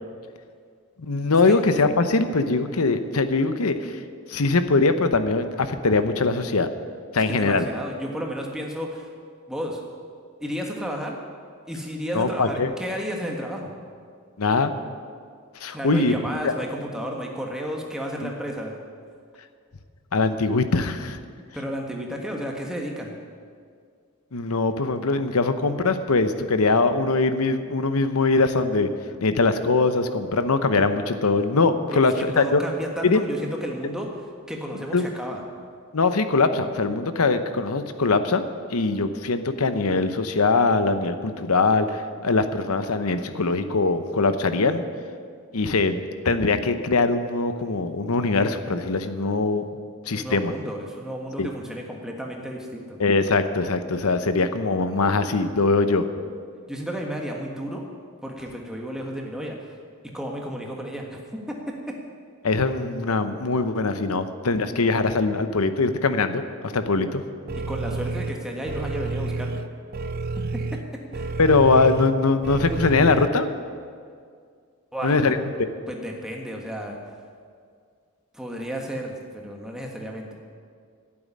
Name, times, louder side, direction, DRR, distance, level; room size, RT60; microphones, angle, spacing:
voice 1, 1.0-4.0 4.3-6.7 7.1-7.6 12.1-12.7 14.4-14.7 15.6-16.1 16.4-16.5 18.2-18.3 20.1-21.2 24.3-28.9 29.2-32.6 33.0-33.2 34.9-35.0 35.9-38.4 38.7-44.8 45.5-49.6 50.1-50.5 51.4-51.5 53.0-56.0 62.4-67.2 71.4-73.5 75.0-75.4, left 3 dB, 80° left, 10 dB, 0.9 m, -22 dB
voice 2, 7.3-9.1 9.5-9.8 10.4-11.2 11.7-13.7 15.7-18.7 21.5-23.1 32.3-35.4 50.1-53.0 56.7-57.9 58.2-59.6 60.0-62.0 67.7-69.6 70.4-71.4 74.9-75.4 75.9-77.0 78.3-80.3, equal, 5° right, 0 dB, 1.5 m, -32 dB
sound 1, 67.5-73.3, right 3 dB, 40° right, 0.4 m, -30 dB
11.5 x 8.7 x 9.9 m, 2.1 s
head